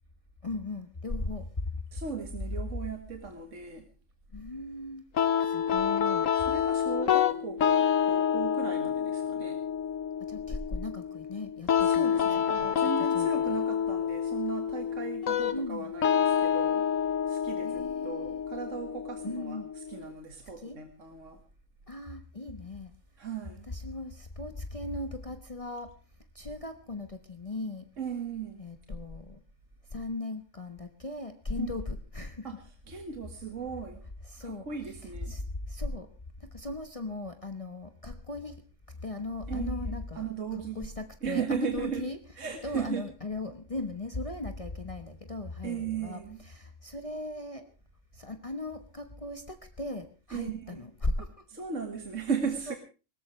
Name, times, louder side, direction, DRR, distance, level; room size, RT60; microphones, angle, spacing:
voice 1, 0.4-1.5 4.3-5.0 5.5-6.2 10.3-12.1 12.6-12.7 13.1-13.6 15.5-15.9 17.6-18.5 19.2-19.7 20.6-20.8 21.9-22.9 23.7-25.9 26.3-27.8 28.6-29.4 29.9-32.6 34.2-34.7 35.0-35.4 35.7-36.1 36.5-38.5 39.0-40.3 40.7-42.2 42.6-47.7 48.2-51.3 52.7-52.8, left 2 dB, 30° left, 7 dB, 1.3 m, -37 dB
voice 2, 1.9-3.9 6.5-9.6 11.8-16.9 17.3-21.4 23.2-23.7 28.0-28.6 31.6-31.7 32.4-34.0 34.4-35.4 39.5-40.9 41.2-42.1 42.4-43.1 45.6-46.4 50.3-50.8 51.5-52.8, right 6 dB, 75° right, 5 dB, 2.2 m, -37 dB
sound 1, 5.2-20.1, left 8 dB, 90° left, 1.5 m, -28 dB
21.0 x 18.5 x 3.3 m, 0.33 s
omnidirectional pair, 1.3 m